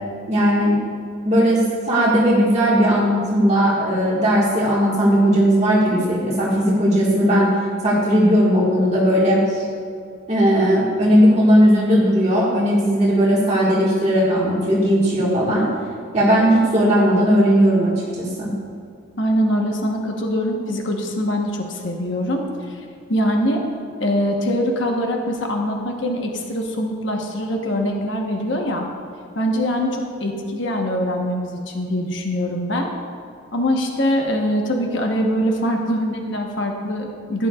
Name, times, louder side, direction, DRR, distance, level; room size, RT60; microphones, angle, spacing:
voice 1, 0.3-0.8 1.2-7.5 7.8-9.6 10.3-15.7 16.1-18.5, equal, 35° right, -6 dB, 1.7 m, -17 dB
voice 2, 19.2-22.8 23.1-23.6 24.0-28.9 29.3-32.9 33.5-37.5, equal, 60° left, 1 dB, 1.1 m, -23 dB
16.5 x 10.0 x 2.4 m, 2.4 s
head